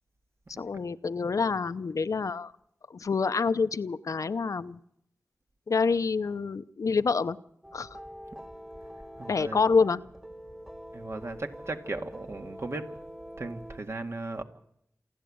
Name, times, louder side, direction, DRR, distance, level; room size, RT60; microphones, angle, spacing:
voice 1, 0.6-2.5 2.9-4.8 5.7-7.4 7.7-8.0 9.3-10.0, left 5 dB, 75° left, 0.7 m, -27 dB
sound 1, 7.6-13.8, equal, 10° right, 1.8 m, -45 dB
voice 2, 9.2-9.6 10.9-13.0 13.4-14.4, right 2 dB, 50° right, 2.0 m, -36 dB
27.5 x 11.5 x 8.6 m
wide cardioid pair, 70°, 6 cm